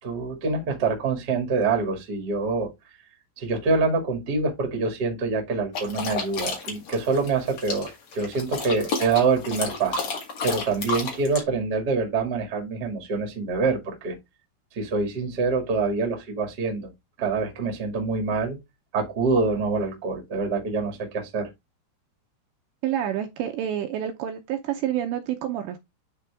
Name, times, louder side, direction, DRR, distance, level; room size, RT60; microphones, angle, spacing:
voice 1, 0.0-2.7 3.4-10.0 10.4-14.1 14.7-16.9 17.2-18.6 18.9-21.5, right 4 dB, 45° right, 1.3 m, -25 dB
sound 1, 5.7-11.4, left 4 dB, 50° left, 2.3 m, -31 dB
voice 2, 22.8-25.8, right 11 dB, 80° right, 2.7 m, -28 dB
10.0 x 3.8 x 3.4 m
omnidirectional pair, 5.6 m